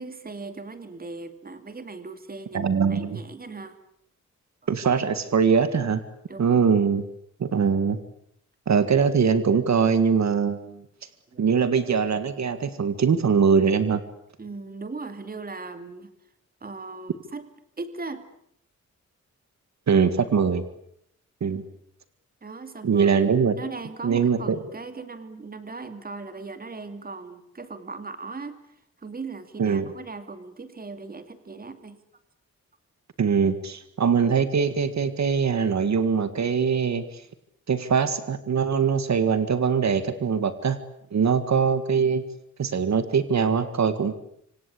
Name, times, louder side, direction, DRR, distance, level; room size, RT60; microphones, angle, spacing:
voice 1, 0.0-3.8 6.3-6.6 11.3-11.6 14.4-16.1 16.6-17.5 17.8-18.3 22.4-23.1 23.5-32.0 41.2-41.3, right 3 dB, 30° right, 9 dB, 2.6 m, -38 dB
voice 2, 2.5-3.2 4.7-6.0 6.4-7.0 7.4-8.0 8.7-10.8 11.4-14.0 19.9-20.6 21.4-21.6 22.8-23.5 24.0-24.6 29.6-29.9 33.2-37.2 37.7-40.8 41.1-42.2 42.6-44.1, right 6 dB, 65° right, 11 dB, 1.9 m, -22 dB
26.5 x 26.0 x 8.5 m, 0.71 s
wide cardioid pair, 175°, 29 cm